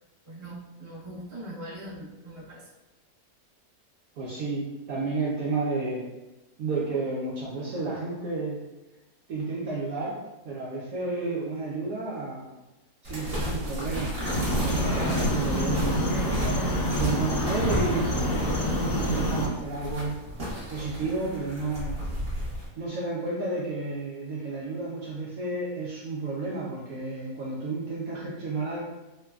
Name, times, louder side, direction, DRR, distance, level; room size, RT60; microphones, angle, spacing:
voice 1, 0.2-2.7, right 1 dB, 25° right, -9 dB, 0.7 m, -41 dB
voice 2, 4.2-6.0 6.6-8.6 9.3-10.1 10.4-12.5 13.0-20.2 20.7-22.0 22.8-28.8, right 3 dB, 70° right, -5 dB, 0.9 m, -32 dB
sound 1, 13.0-22.7, equal, 45° right, 1.0 m, -33 dB
sound 2, 14.2-19.5, equal, 65° left, 0.9 m, -27 dB
3.1 x 2.1 x 2.3 m, 1.0 s
omnidirectional pair, 1.8 m